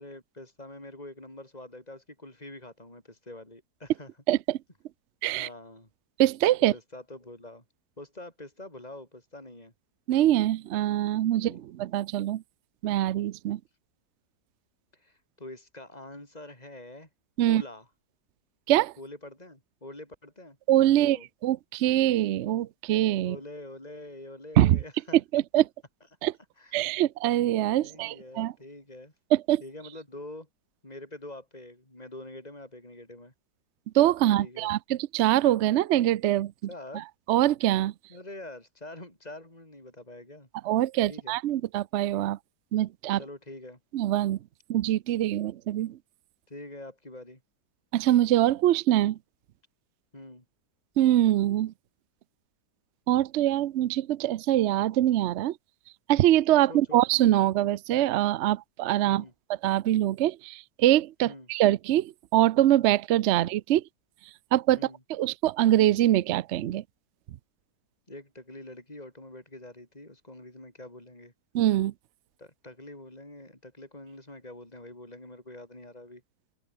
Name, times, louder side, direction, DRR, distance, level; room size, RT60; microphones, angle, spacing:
voice 1, 0.0-4.1 5.4-5.9 6.7-7.6 8.0-9.7 11.4-11.6 14.9-17.1 17.4-17.9 19.0-20.6 20.9-21.3 23.2-25.2 26.6-26.9 27.8-29.1 29.6-30.5 30.8-33.3 34.3-34.7 36.7-37.0 38.1-40.5 41.1-41.4 43.1-43.8 46.5-47.4 50.1-50.4 56.7-57.0 59.0-59.3 61.2-61.5 64.7-65.0 68.1-71.3 72.4-76.2, left 1 dB, 20° left, 6.3 m, -45 dB
voice 2, 4.3-4.6 5.2-5.5 6.2-6.7 10.1-11.5 11.8-12.4 12.8-13.6 17.4-17.6 18.7-18.9 20.7-21.2 21.4-23.4 24.6-24.8 25.3-25.6 26.2-26.3 26.7-28.5 29.3-29.6 33.9-36.5 37.3-37.9 40.6-42.4 42.7-43.2 43.9-44.4 44.7-46.0 47.9-49.2 51.0-51.7 53.1-55.5 56.1-59.2 59.6-63.8 64.5-64.8 65.1-66.8 71.5-71.9, right 13 dB, 75° right, 0.6 m, -23 dB
open air
omnidirectional pair, 1.8 m